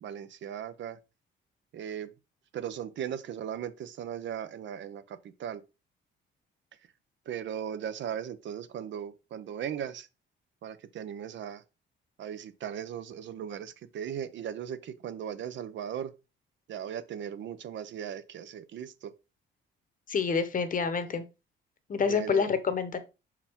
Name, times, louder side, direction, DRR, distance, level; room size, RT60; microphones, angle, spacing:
voice 1, 0.0-1.0 1.7-2.1 2.5-5.0 5.4-5.6 7.3-10.1 10.6-11.6 12.2-16.1 16.7-18.9 22.1-22.5, right 9 dB, 70° right, 0.7 m, -37 dB
voice 2, 20.1-21.2 21.9-23.0, left 5 dB, 40° left, 1.0 m, -27 dB
5.7 x 4.8 x 3.6 m
cardioid pair, 90°, 20 cm